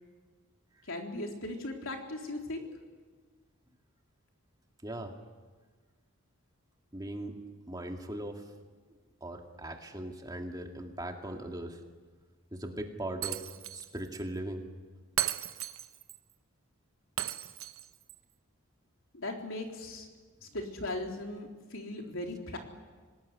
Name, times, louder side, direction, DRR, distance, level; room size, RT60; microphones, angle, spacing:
voice 1, 0.9-2.7 19.1-20.1 20.5-22.6, left 1 dB, 65° left, 2 dB, 3.8 m, -38 dB
voice 2, 4.8-5.1 6.9-7.4 7.7-8.5 9.2-11.8 12.5-14.7, right 1 dB, 20° right, 3 dB, 2.2 m, -39 dB
Shatter, 13.2-13.9 14.1-14.2 15.2-16.2 17.2-18.2, right 11 dB, 75° right, 1.0 m, -35 dB
26.0 x 19.5 x 9.9 m, 1.4 s
head